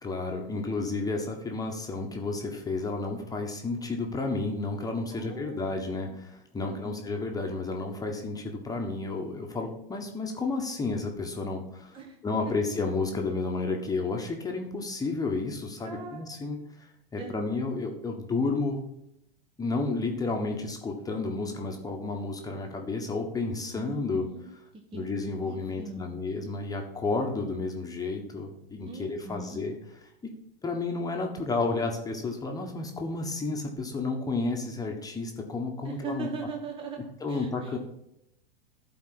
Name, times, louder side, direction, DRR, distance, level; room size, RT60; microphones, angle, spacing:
voice 1, 0.0-12.0 12.2-18.8 19.6-24.3 24.9-29.7 30.6-36.3 37.2-37.8, left 3 dB, 10° left, 2 dB, 1.3 m, -31 dB
voice 2, 5.1-6.2 6.6-7.1 11.9-12.2 12.4-12.5 15.8-16.2 17.2-17.6 23.7-25.1 25.4-26.2 28.9-29.7 35.8-37.8, right 4 dB, 20° right, 3 dB, 1.1 m, -41 dB
12.0 x 4.3 x 6.0 m, 0.80 s
hypercardioid pair, 105°, 29 cm